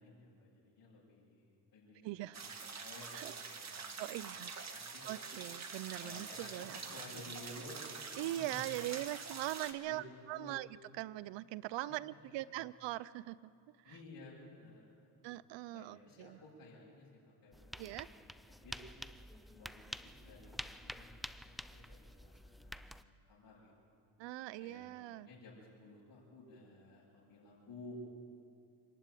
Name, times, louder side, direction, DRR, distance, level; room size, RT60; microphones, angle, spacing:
voice 1, 0.0-3.2 3.5-4.4 4.7-5.0 6.0-8.6 9.8-10.5 11.8-12.6 13.8-15.1 15.7-18.7 19.5-23.7 24.6-28.0, left 2 dB, 55° left, -9 dB, 6.8 m, -55 dB
voice 2, 2.0-2.4 3.1-3.3 3.6-4.5 5.1-6.8 8.2-10.7 11.0-13.5 15.2-16.4 17.8-18.1 24.2-25.3, right 16 dB, 85° right, 20 dB, 0.6 m, -41 dB
sound 1, 2.3-9.7, right 5 dB, 40° right, 1.8 m, -46 dB
sound 2, 17.5-23.0, equal, ahead, 0.4 m, -49 dB
25.0 x 11.5 x 9.2 m, 2.5 s
cardioid pair, 90°, 43 cm